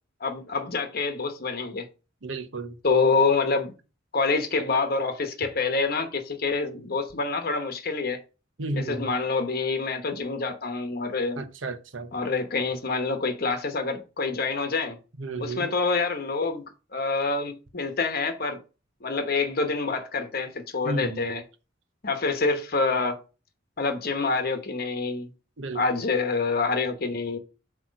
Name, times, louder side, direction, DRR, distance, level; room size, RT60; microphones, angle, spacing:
voice 1, 0.2-1.9 2.8-3.7 4.1-8.2 8.7-11.4 12.1-15.0 15.4-16.6 16.9-18.6 19.0-21.4 22.0-23.2 23.8-25.3 25.7-27.4, left 4 dB, 50° left, 1.0 m, -26 dB
voice 2, 2.2-2.8 8.6-9.1 11.4-12.2 15.2-15.7 20.8-21.3 25.6-26.0, right 2 dB, 70° right, 0.9 m, -33 dB
7.9 x 3.1 x 6.2 m
head